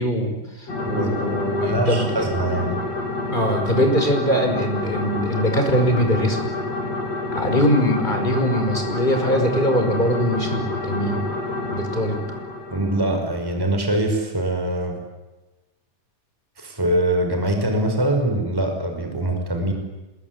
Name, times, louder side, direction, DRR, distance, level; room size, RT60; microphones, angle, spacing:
voice 1, 0.0-2.2 3.3-6.5 7.3-11.2 11.7-12.2, equal, 15° left, 4 dB, 5.4 m, -22 dB
sound 1, 0.7-13.5, left 2 dB, 55° left, 6.2 m, -28 dB
voice 2, 1.6-2.8 12.7-15.0 16.6-19.7, right 1 dB, 5° right, 4 dB, 5.0 m, -23 dB
26.5 x 22.0 x 9.6 m, 1.1 s
omnidirectional pair, 3.6 m